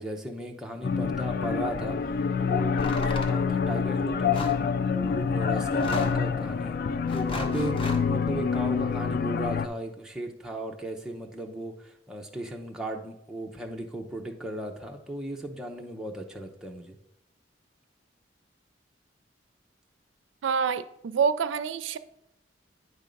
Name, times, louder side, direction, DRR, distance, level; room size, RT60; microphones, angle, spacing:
voice 1, 0.0-2.0 2.4-4.5 4.9-6.8 7.1-11.7 12.1-17.0, right 1 dB, 5° right, 0 dB, 0.7 m, -36 dB
Blade Runner Ambient, 0.8-9.7, left 5 dB, 50° left, 0.3 m, -27 dB
sound 1, 2.8-3.4 4.3-4.6 5.7-6.3 7.1-8.0, left 2 dB, 30° left, 0.8 m, -36 dB
voice 2, 20.4-22.0, right 6 dB, 85° right, 13 dB, 0.4 m, -27 dB
9.2 x 3.6 x 5.2 m, 0.76 s
head